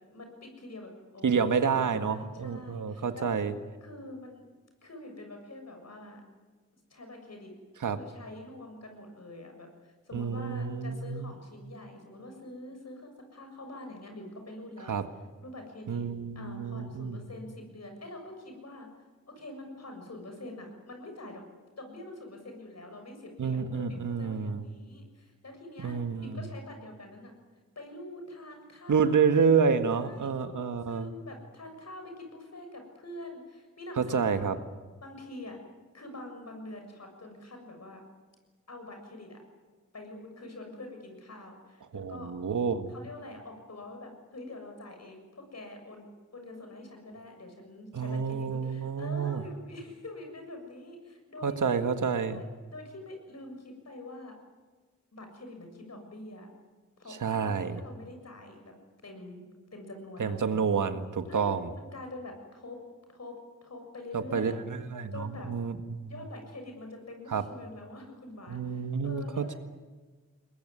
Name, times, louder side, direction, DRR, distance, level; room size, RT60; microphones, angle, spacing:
voice 1, 0.1-3.4 3.8-4.4 4.8-6.2 6.9-7.5 7.9-15.0 15.4-16.0 16.4-18.9 19.3-21.4 21.8-27.3 27.8-29.5 30.0-30.6 30.9-34.5 35.0-35.6 35.9-38.0 38.7-39.4 39.9-42.3 42.9-46.1 46.3-51.8 52.3-54.4 55.1-56.5 57.0-58.7 59.0-59.4 59.7-60.6 61.3-62.8 63.1-63.4 63.6-64.6 65.1-65.5 66.1-69.6, left 2 dB, 55° left, 4 dB, 7.1 m, -45 dB
voice 2, 1.2-3.5 7.8-8.0 10.1-11.3 14.9-15.0 15.9-17.2 23.4-24.7 25.8-26.4 28.9-31.1 34.0-34.6 41.9-42.9 47.9-49.4 51.4-52.4 57.1-57.8 60.2-61.7 64.1-66.1 67.3-67.4 68.5-69.6, right 6 dB, 75° right, 8 dB, 1.7 m, -29 dB
22.0 x 21.5 x 9.9 m, 1.3 s
cardioid pair, 60°, 31 cm